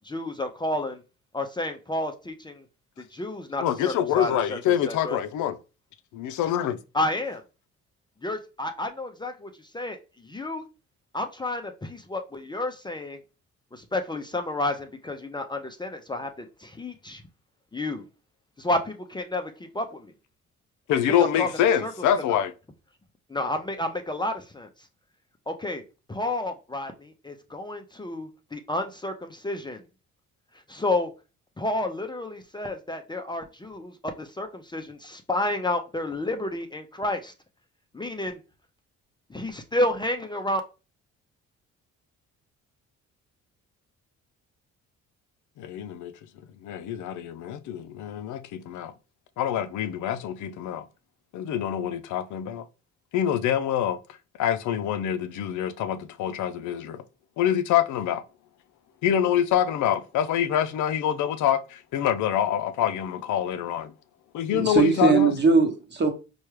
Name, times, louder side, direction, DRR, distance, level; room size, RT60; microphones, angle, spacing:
voice 1, 0.0-1.0 1.3-2.6 3.1-5.2 6.9-7.4 8.2-10.6 11.1-13.2 13.7-17.2 17.7-18.0 18.6-20.1 21.1-21.5 21.8-21.9 22.3-22.4 23.3-24.7 25.5-25.8 26.1-29.8 30.7-31.1 31.6-37.3 37.9-38.4 39.3-40.6, left 1 dB, 15° left, 0.5 m, -30 dB
voice 2, 3.6-5.6 6.1-6.8 20.9-22.5 45.6-46.1 46.6-48.9 49.4-50.8 51.3-52.6 53.1-54.0 54.4-57.0 57.4-58.2 59.0-63.9 64.3-65.3, left 10 dB, 75° left, 0.5 m, -25 dB
voice 3, 64.5-66.1, right 5 dB, 35° right, 1.0 m, -20 dB
4.4 x 2.3 x 3.1 m
cardioid pair, 90°, 30 cm